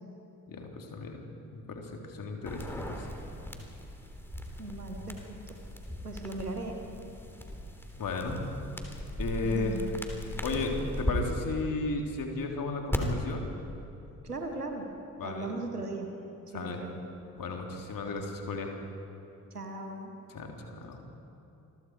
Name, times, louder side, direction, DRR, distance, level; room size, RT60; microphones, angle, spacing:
voice 1, 0.5-1.2 1.5-3.1 8.0-8.4 9.2-9.8 10.4-13.5 15.2-15.5 16.5-16.8 17.4-18.7 20.3-21.0, left 3 dB, 45° left, 2 dB, 3.5 m, -34 dB
sound 1, 2.4-11.1 12.9-13.0, equal, 5° left, 3.5 m, -38 dB
voice 2, 4.6-5.6 6.0-6.8 9.4-9.9 14.2-16.1 16.5-17.0 18.2-18.3 19.5-20.1, right 2 dB, 90° right, 4 dB, 1.5 m, -38 dB
28.0 x 22.0 x 4.8 m, 2.8 s
figure-of-eight pair, 40°, 45 cm